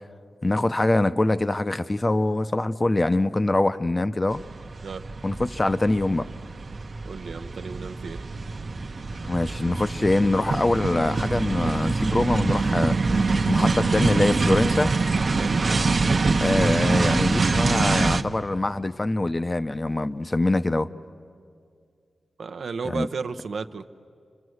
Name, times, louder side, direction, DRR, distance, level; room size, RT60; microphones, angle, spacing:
voice 1, 0.4-4.4 5.2-6.3 9.2-13.0 13.5-14.9 16.4-20.9 22.8-23.1, left 2 dB, 25° left, 0.6 m, -23 dB
sound 1, 4.3-18.2, right 3 dB, 50° right, 0.9 m, -25 dB
voice 2, 7.0-8.2 15.4-15.6 22.4-23.8, right 5 dB, 80° right, 0.8 m, -33 dB
28.5 x 25.5 x 7.9 m
wide cardioid pair, 100°, 0 cm